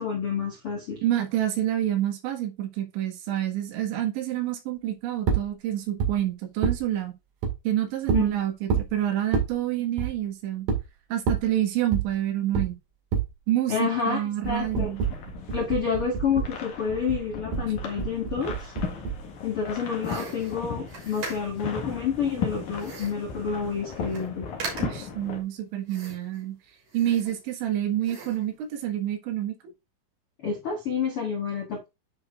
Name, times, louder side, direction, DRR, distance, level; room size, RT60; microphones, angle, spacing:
voice 1, 0.0-1.0 8.1-8.2 13.7-14.9 15.5-18.7 19.4-24.4 30.4-31.9, left 6 dB, 75° left, 1.2 m, -29 dB
voice 2, 1.0-7.1 7.7-10.7 11.1-12.8 13.5-15.1 24.8-26.6 26.9-29.6, right 12 dB, 75° right, 3.9 m, -28 dB
sound 1, 5.3-5.5 6.0-6.1 6.6-6.8 7.4-7.5 8.1-8.3 8.7-8.9 9.3-9.5 10.0-10.1 10.7-10.8 11.3-11.5 11.9-12.1 12.6-12.7 13.1-13.3 14.4-16.6 16.9-19.2, right 6 dB, 60° right, 3.5 m, -27 dB
sound 2, 14.6-25.4, left 6 dB, 55° left, 2.3 m, -37 dB
sound 3, 20.0-21.7 22.8-23.3 23.7-23.8 24.0-24.3 24.6-25.1 25.9-26.4 26.9-27.7 28.0-28.5, right 3 dB, 40° right, 4.1 m, -39 dB
10.5 x 4.9 x 2.5 m
omnidirectional pair, 5.4 m